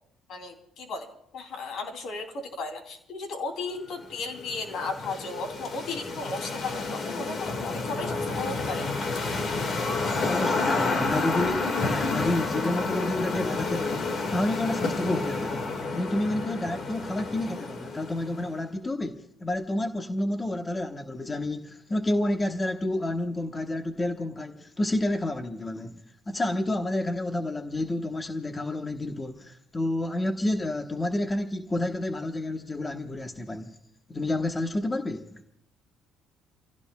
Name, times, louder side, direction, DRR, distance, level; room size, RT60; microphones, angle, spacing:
voice 1, 0.3-8.9 10.7-11.0, left 3 dB, 65° left, 2.9 m, -35 dB
sound 1, 4.0-18.5, left 3 dB, 50° left, 1.9 m, -30 dB
voice 2, 10.2-15.7 15.9-33.8 34.1-35.4, left 1 dB, 20° left, 1.1 m, -30 dB
30.0 x 16.0 x 2.3 m
cardioid pair, 95°, 0 cm